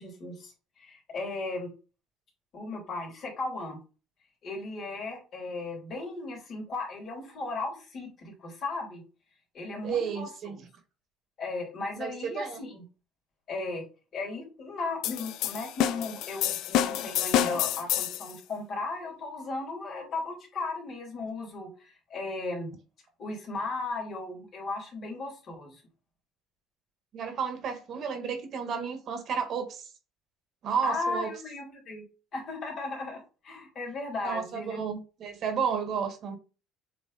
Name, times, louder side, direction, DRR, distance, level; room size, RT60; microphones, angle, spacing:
voice 1, 0.0-1.7 2.5-3.8 4.4-9.0 9.5-10.6 11.4-12.8 13.5-13.9 14.1-22.7 23.2-25.8 30.8-32.0 32.3-34.8, left 3 dB, 45° left, -1 dB, 3.2 m, -36 dB
voice 2, 9.8-10.6 11.9-12.6 27.1-29.9 30.6-31.3 34.2-36.4, right 6 dB, 50° right, 7 dB, 1.5 m, -32 dB
sound 1, 15.0-18.3, left 11 dB, 70° left, 0.5 m, -28 dB
7.4 x 3.3 x 4.0 m, 0.33 s
cardioid pair, 135°, 0 cm